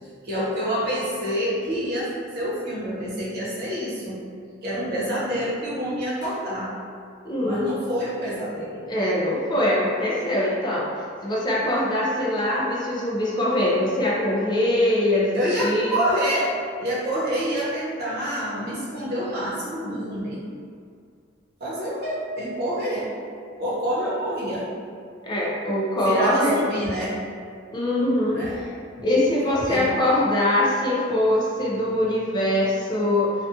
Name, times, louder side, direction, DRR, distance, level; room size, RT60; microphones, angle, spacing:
voice 1, 0.2-4.2 4.6-6.7 7.4-8.9 11.6-11.7 15.3-16.5 16.8-20.4 21.6-23.1 23.6-24.7 26.0-27.2 28.3-28.6 28.9-29.9, equal, 55° right, -8 dB, 0.8 m, -27 dB
voice 2, 7.2-7.7 8.9-10.9 11.2-15.9 25.2-26.6 27.7-28.4 29.0-33.3, left 1 dB, 20° left, -5 dB, 0.3 m, -22 dB
2.5 x 2.2 x 2.6 m, 2.2 s
head